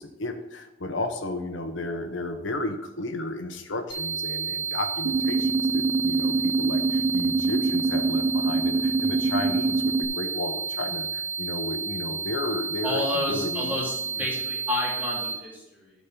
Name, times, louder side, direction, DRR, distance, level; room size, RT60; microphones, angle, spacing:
voice 1, 0.0-13.7 14.2-14.3, left 2 dB, 70° left, 5 dB, 0.9 m, -33 dB
sound 1, 3.9-15.3, right 6 dB, 25° left, 2.0 m, -31 dB
sound 2, 5.1-10.1, right 3 dB, 90° right, 0.8 m, -25 dB
voice 2, 12.8-15.9, left 2 dB, 10° right, -5 dB, 3.0 m, -30 dB
12.0 x 4.2 x 5.8 m, 0.95 s
head